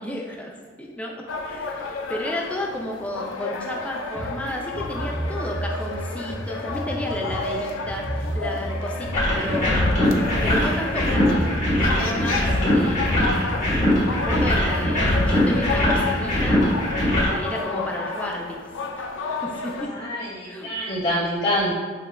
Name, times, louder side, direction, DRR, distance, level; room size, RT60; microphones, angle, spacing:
voice 1, 0.0-9.8 10.4-13.7 14.1-16.6 17.3-18.6 19.0-19.1 19.4-19.9 20.5-20.7, left 1 dB, 5° left, 0 dB, 0.4 m, -33 dB
sound 1, 1.3-19.9, left 4 dB, 75° left, 0.4 m, -31 dB
sound 2, 4.2-16.6, right 1 dB, 10° right, 0.8 m, -32 dB
sound 3, 9.1-17.3, left 1 dB, 40° left, 1.3 m, -21 dB
voice 2, 19.8-21.7, equal, 55° left, -11 dB, 1.4 m, -26 dB
6.6 x 2.3 x 2.2 m, 1.5 s
head